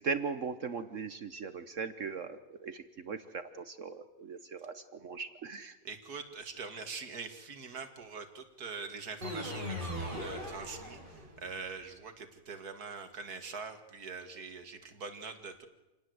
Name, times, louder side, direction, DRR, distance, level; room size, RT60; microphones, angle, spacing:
voice 1, 0.0-5.8, right 5 dB, 55° right, 11 dB, 1.2 m, -39 dB
voice 2, 5.8-15.7, right 5 dB, 75° right, 7 dB, 2.5 m, -43 dB
sound 1, 9.2-11.5, equal, 30° right, 5.5 m, -39 dB
28.0 x 19.0 x 7.9 m, 1.0 s
omnidirectional pair, 1.7 m